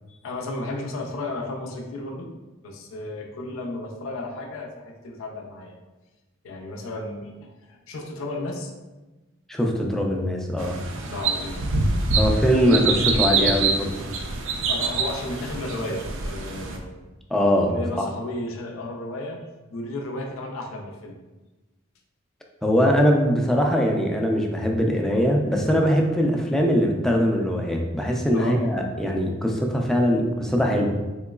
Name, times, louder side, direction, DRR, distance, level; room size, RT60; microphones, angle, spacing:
voice 1, 0.1-2.3 2.6-5.8 6.4-8.7 11.1-11.7 12.1-12.8 14.7-16.9 17.7-19.4 19.7-21.2 28.3-28.7, left 2 dB, 85° left, 3 dB, 0.4 m, -33 dB
voice 2, 9.5-10.8 12.2-13.9 17.3-17.7 18.0-18.1 22.6-30.9, equal, ahead, 0 dB, 0.3 m, -21 dB
sound 1, 10.6-16.8, right 4 dB, 70° right, 0.4 m, -25 dB
3.7 x 3.0 x 2.3 m, 1.1 s
head